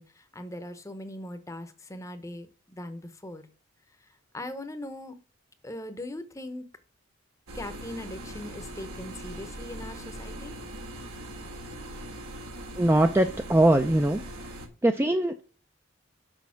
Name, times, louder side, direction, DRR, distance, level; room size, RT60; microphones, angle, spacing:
voice 1, 0.0-3.5 4.0-4.1 4.3-5.2 5.6-6.7 7.5-10.5, left 1 dB, 15° left, 10 dB, 0.7 m, -40 dB
sound 1, 7.5-14.7, right 1 dB, 85° right, 1.3 m, -41 dB
voice 2, 12.8-14.6 14.8-15.4, right 1 dB, 10° right, 6 dB, 0.3 m, -22 dB
6.3 x 5.2 x 5.7 m, 0.39 s
head